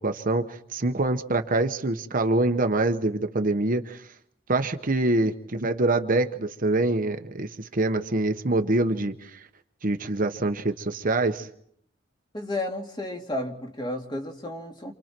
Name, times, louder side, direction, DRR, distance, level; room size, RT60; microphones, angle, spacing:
voice 1, 0.0-4.1 4.5-9.4 9.8-11.5, right 2 dB, 45° right, 7 dB, 1.1 m, -25 dB
voice 2, 12.3-14.9, left 1 dB, 25° left, 2 dB, 2.7 m, -32 dB
30.0 x 27.5 x 4.5 m, 0.70 s
head